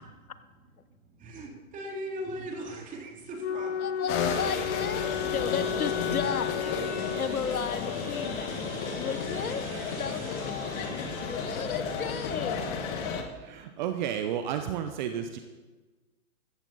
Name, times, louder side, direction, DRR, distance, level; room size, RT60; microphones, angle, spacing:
voice 1, 1.2-4.4, right 1 dB, 20° right, 0 dB, 2.8 m, -39 dB
Wind instrument woodwind instrument, 3.4-7.8, left 9 dB, 50° left, 0.6 m, -33 dB
voice 2, 3.8-12.6, left 6 dB, 75° left, 13 dB, 1.1 m, -35 dB
sound 1, 4.1-13.2, left 6 dB, 30° left, 1.7 m, -33 dB
sound 2, 4.9-13.1, right 4 dB, 70° right, 2.2 m, -45 dB
voice 3, 13.4-15.4, right 9 dB, 35° right, 8 dB, 0.8 m, -32 dB
15.0 x 14.5 x 4.1 m, 1.3 s
figure-of-eight pair, 125°, 43 cm